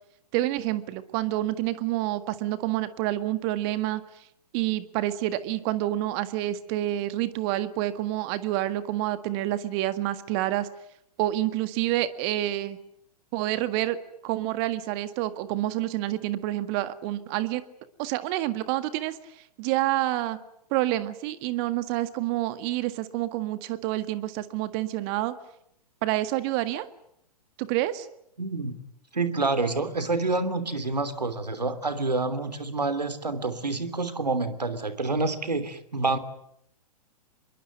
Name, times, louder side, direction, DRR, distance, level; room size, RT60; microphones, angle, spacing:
voice 1, 0.3-4.2 4.5-10.7 11.2-12.8 13.3-17.6 18.0-20.4 20.7-25.3 26.0-26.9 27.6-28.1, right 15 dB, 40° right, 12 dB, 1.8 m, -28 dB
voice 2, 28.4-28.8 29.1-36.2, right 3 dB, 90° right, 11 dB, 3.2 m, -28 dB
26.0 x 22.5 x 9.5 m, 0.74 s
figure-of-eight pair, 115°, 21 cm